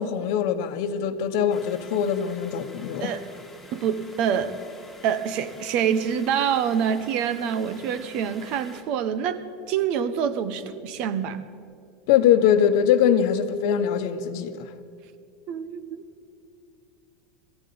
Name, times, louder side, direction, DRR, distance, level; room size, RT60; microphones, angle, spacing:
voice 1, 0.0-3.1 12.1-14.7, left 9 dB, 55° left, 1.2 m, -22 dB
sound 1, 1.5-8.8, left 2 dB, 5° left, 2.0 m, -47 dB
voice 2, 3.7-4.6 5.0-9.4 9.7-11.4 15.5-16.0, right 8 dB, 40° right, 1.1 m, -26 dB
21.5 x 15.5 x 8.7 m
supercardioid pair, 180°, 2 cm